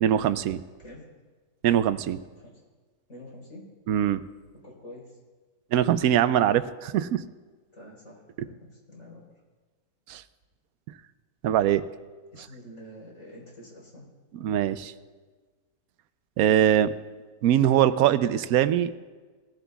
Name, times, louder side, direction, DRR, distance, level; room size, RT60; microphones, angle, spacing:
voice 1, 0.0-0.6 1.6-2.2 3.9-4.2 5.7-7.2 10.1-10.2 11.4-11.8 14.4-14.9 16.4-16.9 17.4-18.9, right 11 dB, 75° right, 13 dB, 1.0 m, -22 dB
voice 2, 3.1-3.7 4.6-5.2 7.7-9.2 12.3-14.1, left 1 dB, 55° left, -3 dB, 4.6 m, -47 dB
19.0 x 15.0 x 2.3 m, 1.4 s
omnidirectional pair, 1.6 m